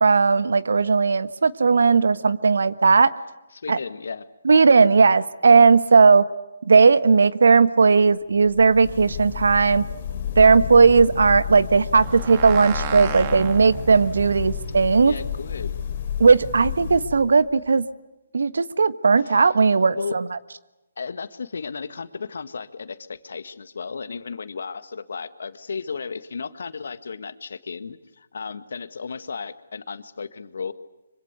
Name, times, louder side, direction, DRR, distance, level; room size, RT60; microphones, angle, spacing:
voice 1, 0.0-3.1 3.7-3.8 4.4-6.2 6.7-9.8 10.4-15.1 16.2-17.8 18.3-20.2, right 4 dB, 70° right, 14 dB, 1.3 m, -17 dB
voice 2, 3.5-4.3 15.0-15.8 19.2-19.5 20.0-20.2 21.0-30.7, left 5 dB, 65° left, 12 dB, 1.7 m, -34 dB
sound 1, 8.4-17.6, left 9 dB, 45° left, 3.7 m, -32 dB
sound 2, 12.0-16.7, right 7 dB, 30° right, 2.2 m, -35 dB
25.5 x 25.0 x 8.1 m, 0.98 s
figure-of-eight pair, 145°, 0 cm